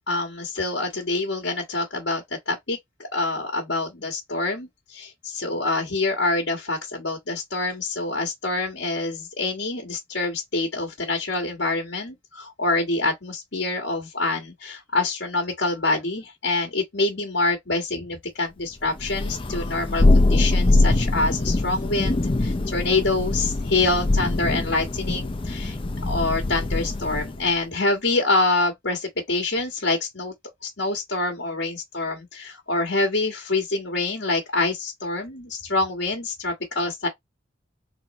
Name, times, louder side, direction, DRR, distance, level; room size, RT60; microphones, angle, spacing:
voice 1, 0.1-25.8 26.0-30.3 30.6-37.1, left 2 dB, 70° left, 1.6 m, -26 dB
Thunder, 19.0-27.4, left 2 dB, 30° left, 0.6 m, -23 dB
4.1 x 3.1 x 4.2 m
head